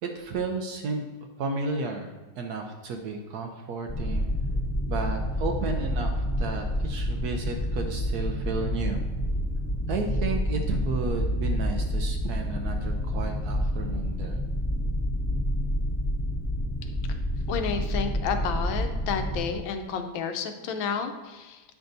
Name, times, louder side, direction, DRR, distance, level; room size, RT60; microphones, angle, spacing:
voice 1, 0.0-1.0 1.4-2.1 2.4-4.3 4.9-9.0 9.9-14.4, right 4 dB, 70° right, 4 dB, 1.0 m, -32 dB
sound 1, 3.9-19.5, equal, 10° left, 1.7 m, -28 dB
voice 2, 17.5-21.6, left 6 dB, 85° left, 7 dB, 1.4 m, -31 dB
9.4 x 6.0 x 2.6 m, 1.2 s
omnidirectional pair, 2.1 m